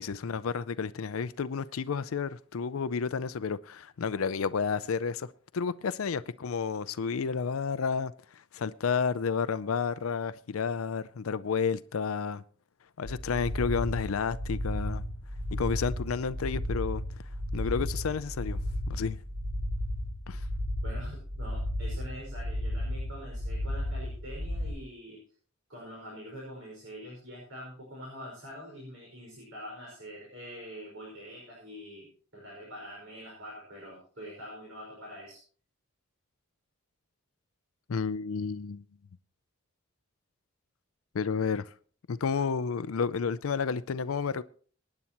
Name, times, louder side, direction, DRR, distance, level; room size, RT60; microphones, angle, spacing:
voice 1, 0.0-5.3 5.5-8.1 8.5-12.4 13.0-15.0 15.5-17.0 17.5-18.6 18.9-19.2 20.3-20.4 37.9-38.8 41.1-41.7 42.1-44.4, left 5 dB, 90° left, 0.5 m, -31 dB
sound 1, 13.0-24.7, equal, 55° right, 5.9 m, -34 dB
voice 2, 20.8-25.2 25.7-35.4 42.3-42.4, equal, 70° right, 5.4 m, -45 dB
23.5 x 9.8 x 3.0 m
head